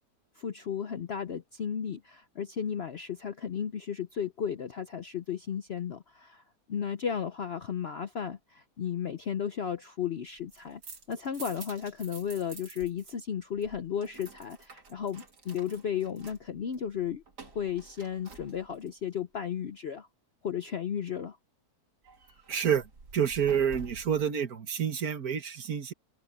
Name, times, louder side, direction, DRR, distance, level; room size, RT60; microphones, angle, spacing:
voice 1, 0.4-6.4 6.7-10.8 11.1-17.2 17.5-20.1 20.4-21.4, left 8 dB, 55° left, 0.7 m, -34 dB
sound 1, 10.4-13.1 13.4-19.0 22.0-24.3, right 4 dB, 80° right, 3.3 m, -49 dB
voice 2, 22.5-25.9, right 8 dB, 65° right, 1.9 m, -29 dB
open air
omnidirectional pair, 1.8 m